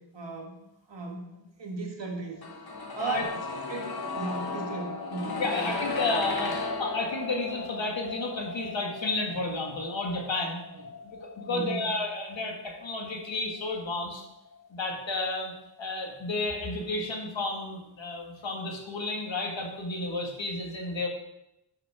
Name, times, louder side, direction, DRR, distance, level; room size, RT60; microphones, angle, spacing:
voice 1, 0.1-2.4 2.9-5.8 11.5-11.8, right 3 dB, 70° right, 1 dB, 1.7 m, -36 dB
sound 1, 2.4-14.2 14.5-14.6, left 3 dB, 55° left, 1.4 m, -36 dB
voice 2, 5.4-10.6 11.0-14.2 14.7-15.5 15.8-21.1, left 2 dB, 75° left, 1 dB, 1.8 m, -32 dB
10.5 x 5.8 x 3.6 m, 0.89 s
wide cardioid pair, 70°, 46 cm